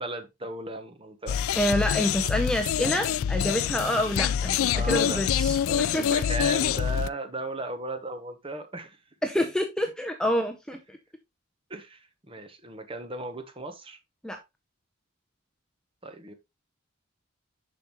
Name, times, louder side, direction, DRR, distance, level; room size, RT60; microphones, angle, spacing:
voice 1, 0.0-1.4 4.7-5.2 5.7-9.0 11.7-14.0 16.0-16.3, right 2 dB, 25° right, 1.0 m, -36 dB
sound 1, 1.3-7.1, left 8 dB, 70° left, 0.3 m, -26 dB
voice 2, 1.6-6.2 9.2-11.0 14.2-14.4, equal, 5° left, 0.6 m, -28 dB
7.0 x 6.0 x 3.0 m
head